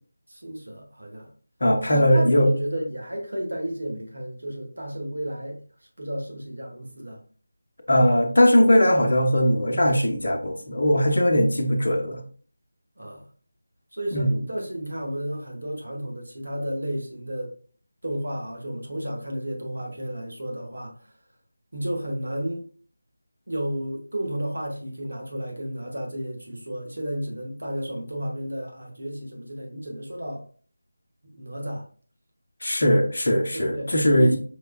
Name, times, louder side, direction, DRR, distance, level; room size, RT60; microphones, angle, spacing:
voice 1, 0.3-1.3 1.9-5.6 6.0-7.2 13.0-13.3 13.9-17.5 18.0-21.0 21.7-22.6 23.5-30.4 31.3-31.8 33.5-34.4, equal, 65° right, 1.4 m, -32 dB
voice 2, 1.6-2.5 7.9-12.2 14.1-14.4 32.6-34.4, equal, 55° left, 0.8 m, -20 dB
5.4 x 3.3 x 2.2 m
figure-of-eight pair, 165°, 0 cm